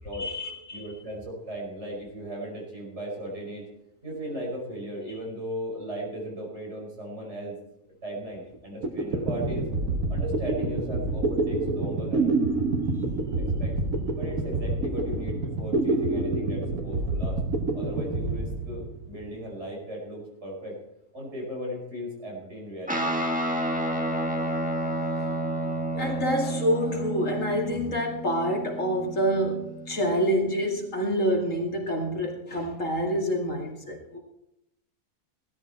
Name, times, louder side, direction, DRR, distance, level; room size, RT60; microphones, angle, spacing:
voice 1, 0.2-0.8 25.2-25.3 25.6-34.2, equal, 65° left, 0 dB, 2.7 m, -27 dB
voice 2, 0.7-3.7 4.0-7.6 8.0-9.7 10.1-12.4 13.4-13.8 14.1-17.4 17.7-20.8 21.1-23.1, equal, 55° right, -3 dB, 5.7 m, -37 dB
sound 1, 8.5-8.6 8.8-19.3, right 2 dB, 75° right, 1.7 m, -27 dB
Guitar, 22.9-30.5, right 1 dB, 5° right, 1.4 m, -30 dB
17.0 x 13.0 x 4.4 m, 0.84 s
omnidirectional pair, 1.5 m